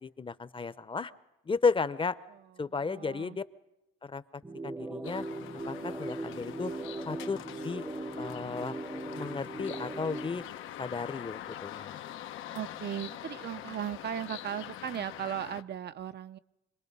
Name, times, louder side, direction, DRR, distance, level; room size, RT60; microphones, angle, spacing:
voice 1, 0.0-1.1 1.5-2.2 2.6-3.4 4.0-4.2 4.6-5.2 5.7-6.7 7.1-7.4 7.6-7.8 8.2-8.8 9.1-10.4 10.8-12.0, left 4 dB, 25° left, 15 dB, 0.8 m, -33 dB
voice 2, 2.3-3.4 12.5-16.4, right 10 dB, 55° right, 12 dB, 0.7 m, -37 dB
sound 1, 4.4-10.4, right 2 dB, 10° right, 0.8 m, -39 dB
sound 2, 5.0-15.6, left 11 dB, 85° left, 0.9 m, -44 dB
26.0 x 19.5 x 5.4 m, 0.97 s
cardioid pair, 90°, 20 cm